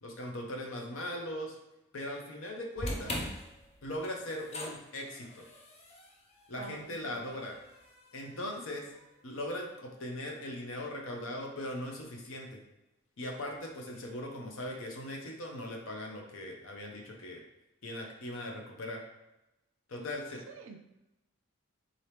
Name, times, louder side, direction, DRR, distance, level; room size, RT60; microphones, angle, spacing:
voice 1, 0.0-1.6 1.9-3.2 3.8-5.4 6.5-7.5 8.1-8.8 9.2-12.6 13.2-17.4 17.8-19.0 19.9-20.4, left 1 dB, 70° left, 1 dB, 0.7 m, -39 dB
sound 1, 2.8-9.0, left 1 dB, 30° left, 0.5 m, -43 dB
voice 2, 6.6-7.2 8.3-8.5 20.0-20.2 20.5-20.8, right 4 dB, 65° right, 5 dB, 0.4 m, -48 dB
3.8 x 2.9 x 3.3 m, 0.92 s
head